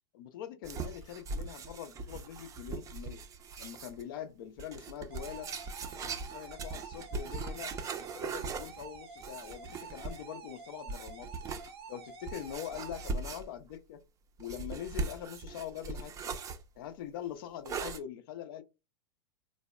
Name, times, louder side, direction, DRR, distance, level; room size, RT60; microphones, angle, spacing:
voice 1, 0.1-3.2 3.6-5.5 5.9-11.3 11.9-14.0 14.4-16.3 16.8-18.6, left 10 dB, 60° left, 0.4 m, -43 dB
sound 1, 0.6-4.0 4.6-10.3 10.9-11.7 12.3-13.7 14.4-16.6 17.6-18.0, right 4 dB, 25° right, 0.4 m, -40 dB
sound 2, 5.1-13.1, right 5 dB, 80° right, 0.7 m, -49 dB
3.3 x 2.1 x 2.3 m
hypercardioid pair, 100°, 13 cm